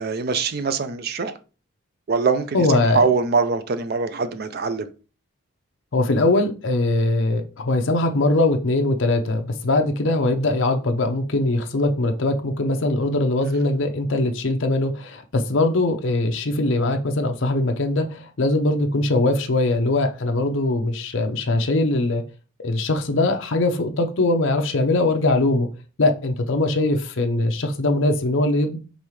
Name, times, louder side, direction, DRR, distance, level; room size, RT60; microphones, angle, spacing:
voice 1, 0.0-1.3 2.1-2.7 2.9-4.9, right 4 dB, 45° right, 0.4 m, -23 dB
voice 2, 2.5-3.0 5.9-22.2 22.6-25.7 26.0-28.8, left 2 dB, 60° left, 0.6 m, -21 dB
5.2 x 3.2 x 3.1 m
head